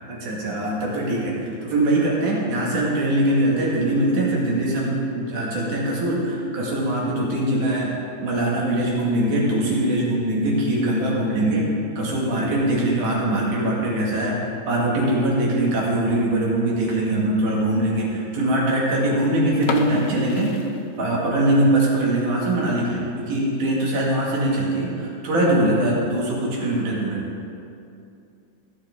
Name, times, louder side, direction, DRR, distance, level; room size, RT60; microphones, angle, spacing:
voice 1, 0.0-7.9 8.2-11.7 12.0-20.7 21.0-27.2, right 1 dB, 90° right, -4 dB, 3.7 m, -22 dB
sound 1, 19.6-21.5 21.8-21.9 22.4-22.6 23.0-23.1 23.4-23.5 24.2-24.5, left 4 dB, 70° left, 1.6 m, -32 dB
16.0 x 8.8 x 3.7 m, 2.6 s
omnidirectional pair, 3.5 m